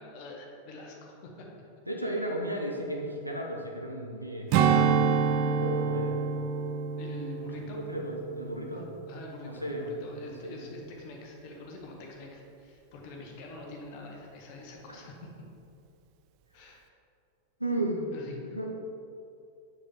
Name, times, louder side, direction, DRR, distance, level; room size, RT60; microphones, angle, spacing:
voice 1, 0.0-1.5 6.9-7.8 8.7-15.3 16.5-16.8 18.1-18.6, left 2 dB, 45° left, 0 dB, 1.3 m, -45 dB
voice 2, 1.9-6.2 7.7-8.9 9.4-10.0 10.2-10.6 14.9-15.0 17.6-18.0 18.5-18.6, right 1 dB, 90° right, 0 dB, 0.8 m, -34 dB
Strum, 4.5-9.2 9.6-9.8, right 6 dB, 45° right, 0.4 m, -28 dB
6.7 x 6.1 x 3.7 m, 2.6 s
figure-of-eight pair, 90°, 0 cm